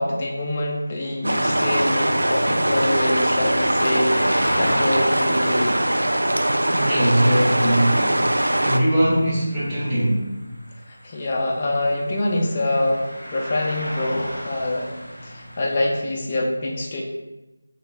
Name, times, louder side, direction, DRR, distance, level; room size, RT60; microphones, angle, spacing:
voice 1, 0.0-5.8 10.9-14.9 15.2-17.0, left 1 dB, 25° left, -2 dB, 0.4 m, -25 dB
sound 1, 1.2-8.8, right 1 dB, 85° right, 0.4 m, -21 dB
sound 2, 2.6-15.9, equal, 40° left, 1.4 m, -36 dB
voice 2, 6.7-8.1 8.6-10.3, right 1 dB, 5° right, -14 dB, 0.9 m, -20 dB
3.7 x 2.3 x 3.9 m, 1.1 s
figure-of-eight pair, 170°, 0 cm